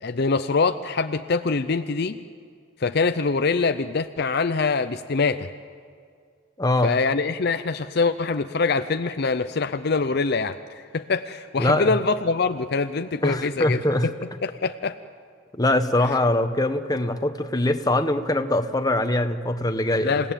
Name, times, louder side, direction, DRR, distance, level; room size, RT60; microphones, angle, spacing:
voice 1, 0.0-2.2 2.8-5.5 6.8-14.1 14.4-15.0 16.0-16.2 20.0-20.3, left 4 dB, 50° left, 9 dB, 0.6 m, -24 dB
voice 2, 6.6-6.9 11.6-12.0 13.2-14.1 15.6-20.1, left 1 dB, 20° left, 7 dB, 1.0 m, -22 dB
28.0 x 17.0 x 9.0 m, 2.2 s
head